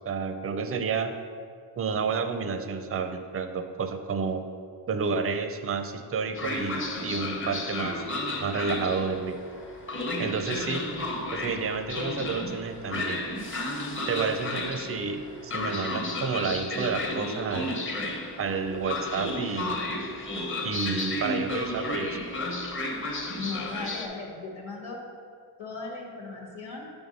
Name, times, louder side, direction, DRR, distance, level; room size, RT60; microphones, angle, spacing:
voice 1, 0.1-1.1 1.8-4.4 4.9-8.1 8.4-9.5 10.2-10.9 11.3-13.2 14.1-17.7 18.4-19.8 20.6-22.2, right 5 dB, 30° right, 8 dB, 0.4 m, -30 dB
Train, 6.3-24.1, left 2 dB, 25° left, 0.9 m, -33 dB
voice 2, 23.4-25.0 25.6-26.9, left 3 dB, 85° left, -1 dB, 1.6 m, -37 dB
8.8 x 3.6 x 5.2 m, 2.2 s
wide cardioid pair, 130°, 48 cm